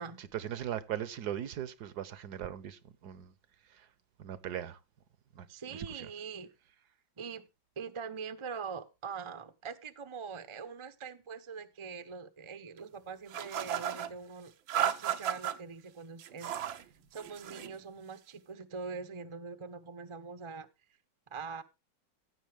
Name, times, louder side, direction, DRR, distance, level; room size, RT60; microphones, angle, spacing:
voice 1, 0.2-3.3 3.7-3.9 4.2-4.8 5.4-6.1, right 10 dB, 65° right, 1.2 m, -39 dB
voice 2, 5.5-6.5 7.2-7.4 7.8-20.7 21.3-21.6, right 5 dB, 35° right, 0.4 m, -43 dB
sound 1, 13.3-14.1 14.7-15.6 16.2-16.8 17.2-17.7, right 10 dB, 90° right, 1.7 m, -34 dB
15.5 x 7.8 x 3.4 m
omnidirectional pair, 2.1 m